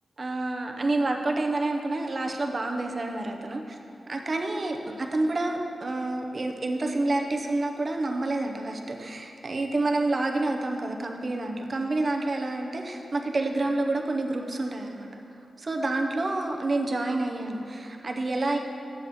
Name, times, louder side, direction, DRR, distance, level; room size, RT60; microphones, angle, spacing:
voice 1, 0.2-3.8 4.1-15.2 15.6-18.6, right 2 dB, 35° right, 3 dB, 0.6 m, -28 dB
8.4 x 7.8 x 4.2 m, 2.6 s
wide cardioid pair, 160°, 0 cm